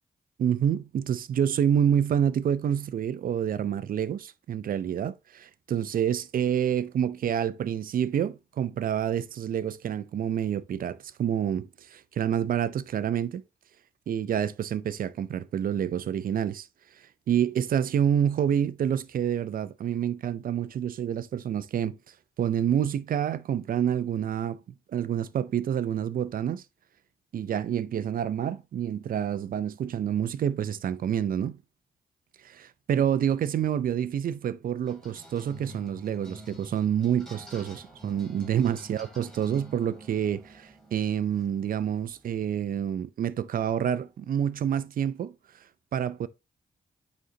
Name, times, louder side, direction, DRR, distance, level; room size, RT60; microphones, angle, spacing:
voice 1, 0.4-13.4 14.1-16.7 17.3-22.0 22.4-24.6 24.9-26.6 27.3-31.6 32.4-45.3 45.9-46.3, right 9 dB, 65° right, 0.5 m, -28 dB
sound 1, 34.9-42.5, right 1 dB, 5° left, 2.7 m, -48 dB
9.0 x 4.1 x 2.8 m
supercardioid pair, 50°, 16 cm